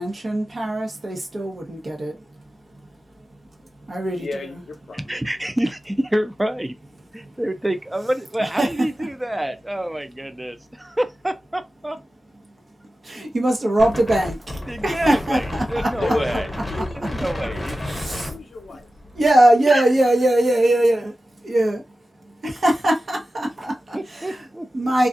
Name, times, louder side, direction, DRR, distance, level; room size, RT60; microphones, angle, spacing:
voice 1, 0.0-2.2 3.9-4.6 8.4-8.7 13.0-15.9 17.8-18.3 19.1-21.1 21.4-21.8 22.4-24.4 24.7-25.1, right 1 dB, 60° right, 0.8 m, -21 dB
voice 2, 4.2-5.3 16.0-18.9, left 3 dB, 80° left, 0.5 m, -34 dB
voice 3, 4.9-6.7 7.1-12.0 14.7-16.5 16.9-17.7 19.7-19.8 23.9-24.7, right 1 dB, 15° right, 0.4 m, -27 dB
Wind, 13.8-19.3, left 1 dB, 25° left, 0.7 m, -31 dB
2.4 x 2.3 x 2.4 m
wide cardioid pair, 65°, 0 cm